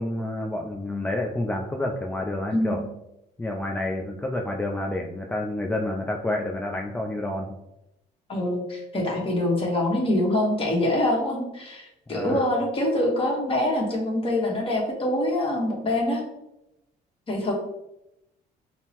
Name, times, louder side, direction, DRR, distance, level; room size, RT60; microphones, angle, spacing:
voice 1, 0.0-2.8 3.4-7.5 12.1-12.4, left 1 dB, 10° left, 0 dB, 0.3 m, -29 dB
voice 2, 2.5-2.9 8.3-16.2 17.3-17.5, left 1 dB, 35° left, -2 dB, 1.2 m, -25 dB
5.5 x 2.1 x 2.8 m, 0.87 s
cardioid pair, 110°, 17 cm